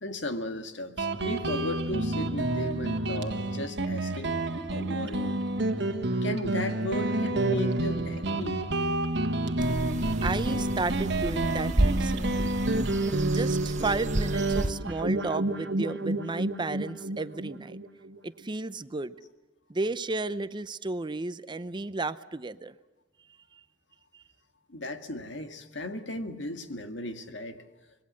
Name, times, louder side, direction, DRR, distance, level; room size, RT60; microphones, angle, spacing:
voice 1, 0.0-4.4 4.7-5.4 6.2-8.6 24.7-27.6, left 1 dB, 70° left, 7 dB, 2.0 m, -35 dB
Guitar, 1.0-18.2, right 2 dB, 65° right, 1.6 m, -29 dB
sound 1, 9.6-14.7, right 1 dB, 40° right, 1.1 m, -31 dB
voice 2, 10.2-12.5 13.3-17.8 18.2-19.1 19.7-22.7 23.5-23.6 24.1-24.2, right 3 dB, 25° right, 14 dB, 0.6 m, -33 dB
25.5 x 21.5 x 6.4 m, 1.1 s
head